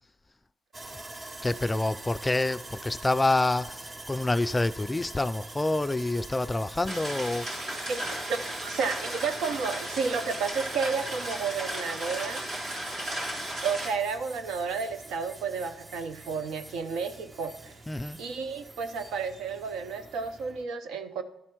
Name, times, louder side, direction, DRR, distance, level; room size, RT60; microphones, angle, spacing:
Sawing, 0.7-20.6, right 2 dB, 25° right, 0.6 m, -45 dB
voice 1, 1.4-7.5 8.0-8.1 17.9-18.2, left 2 dB, 15° left, 0.3 m, -27 dB
sound 1, 6.9-13.9, right 1 dB, 60° right, 3.2 m, -35 dB
voice 2, 8.3-12.4 13.6-17.7 18.2-21.2, right 5 dB, 80° right, 0.8 m, -32 dB
12.0 x 4.4 x 6.0 m
cardioid pair, 90°, 0 cm